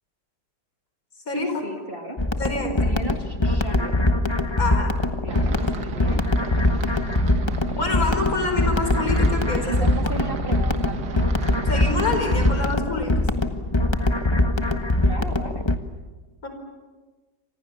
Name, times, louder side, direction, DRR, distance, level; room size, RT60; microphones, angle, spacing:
voice 1, 1.3-2.2 2.8-4.1 5.2-6.2 9.6-11.4 15.0-15.7, right 2 dB, 30° right, 3 dB, 2.4 m, -35 dB
sound 1, 2.2-15.8, left 1 dB, 15° left, 1.2 m, -22 dB
voice 2, 2.4-2.8 4.6-4.9 5.5-5.7 7.7-9.9 11.6-13.1 16.4-16.5, left 3 dB, 50° left, 5 dB, 5.3 m, -26 dB
sound 2, 5.3-12.8, right 5 dB, 65° right, 2.1 m, -34 dB
29.5 x 26.0 x 7.1 m, 1.3 s
omnidirectional pair, 1.9 m